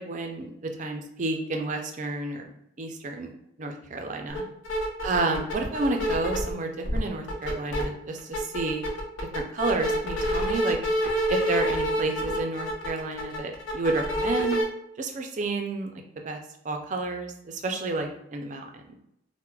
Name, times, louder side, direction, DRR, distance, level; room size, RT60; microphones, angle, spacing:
voice 1, 0.0-2.5 2.8-3.3 3.6-4.4 5.0-8.8 9.3-10.8 11.3-14.6 15.0-15.9 16.2-16.4 16.6-18.9, right 2 dB, 40° right, 4 dB, 0.4 m, -30 dB
sound 1, 4.3-4.4 4.7-6.5 6.8-7.8 8.2-14.6, equal, 85° left, 0.7 m, -27 dB
4.4 x 2.1 x 2.3 m, 0.79 s
head